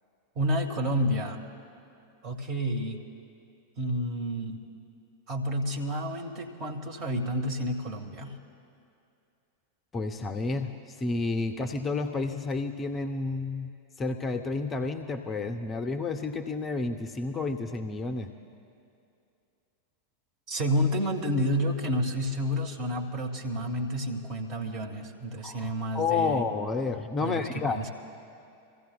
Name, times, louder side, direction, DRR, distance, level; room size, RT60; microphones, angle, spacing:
voice 1, 0.3-1.4 2.2-3.0 3.8-4.6 5.3-8.4 20.5-26.5 27.2-27.9, equal, 35° right, 2 dB, 1.5 m, -30 dB
voice 2, 9.9-13.7 14.0-18.3 25.4-27.9, left 4 dB, 20° left, 7 dB, 0.6 m, -30 dB
27.0 x 15.5 x 2.3 m, 2.6 s
figure-of-eight pair, 90°, 0 cm